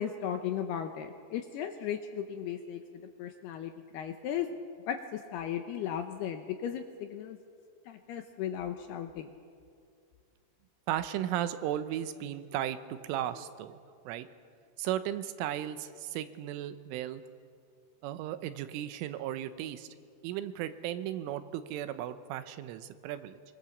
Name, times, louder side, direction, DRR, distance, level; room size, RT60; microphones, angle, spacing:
voice 1, 0.0-4.5 4.9-7.4 7.9-9.3, left 9 dB, 75° left, 6 dB, 2.4 m, -36 dB
voice 2, 10.9-13.8 14.1-14.3 14.8-17.2 18.0-19.9 20.2-23.4, right 11 dB, 90° right, 11 dB, 3.5 m, -35 dB
24.0 x 23.0 x 7.2 m, 2.2 s
omnidirectional pair, 5.6 m